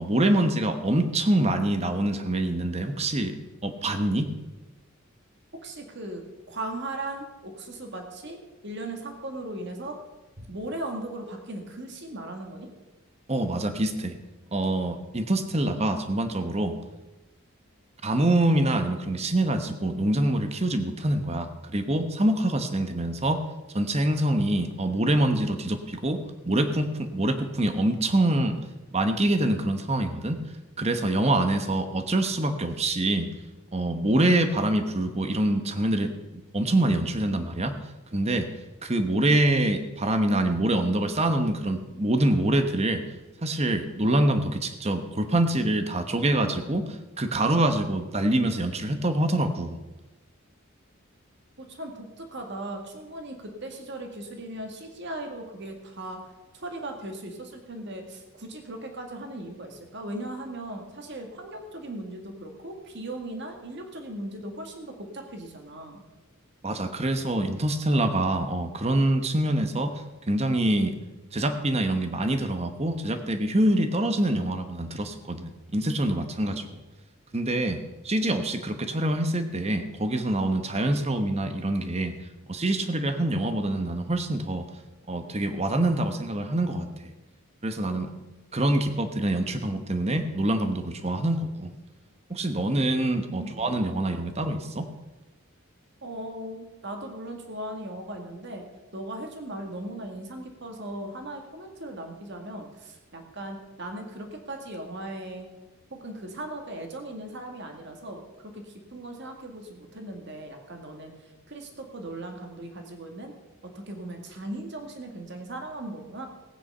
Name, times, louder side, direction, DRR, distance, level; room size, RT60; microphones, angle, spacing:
voice 1, 0.0-3.4 3.6-4.3 13.3-14.2 14.5-16.7 18.0-23.4 23.7-28.6 28.9-30.4 30.8-33.3 33.7-36.1 36.5-37.7 38.1-38.5 38.8-43.0 43.4-49.8 66.6-70.0 70.3-70.9 71.3-76.8 77.3-82.1 82.5-84.6 85.1-86.9 87.6-88.1 88.5-91.7 92.3-94.9, right 1 dB, 30° right, 8 dB, 1.1 m, -25 dB
voice 2, 5.6-6.2 6.5-8.4 8.6-10.0 10.5-12.7 51.6-56.2 56.5-66.0 93.3-93.7 96.0-98.7 98.9-105.5 105.9-113.3 113.7-116.3, right 1 dB, 50° right, 4 dB, 1.9 m, -38 dB
17.5 x 9.1 x 5.5 m, 1.1 s
head